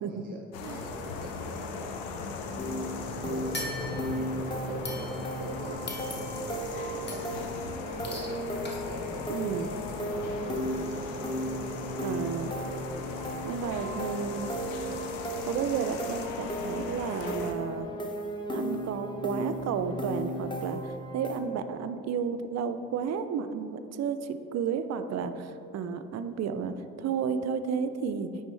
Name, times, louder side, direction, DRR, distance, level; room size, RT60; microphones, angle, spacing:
voice 1, 0.0-2.1 2.6-2.8 3.2-8.5 8.8-11.1, right 2 dB, 25° right, 1 dB, 0.8 m, -44 dB
sound 1, 0.5-17.5, left 4 dB, 75° left, 0.6 m, -38 dB
sound 2, 2.6-21.4, equal, 15° left, 0.8 m, -35 dB
sound 3, 3.5-4.3 4.8-5.5 5.9-6.6 7.1-7.4 8.0-8.4 8.6-8.8, left 1 dB, 30° left, 1.2 m, -40 dB
voice 2, 9.3-9.7 12.0-12.5 13.4-14.5 15.4-17.9 18.5-28.3, right 6 dB, 45° right, 10 dB, 0.4 m, -32 dB
9.4 x 3.4 x 3.2 m, 2.8 s
hypercardioid pair, 50°, 37 cm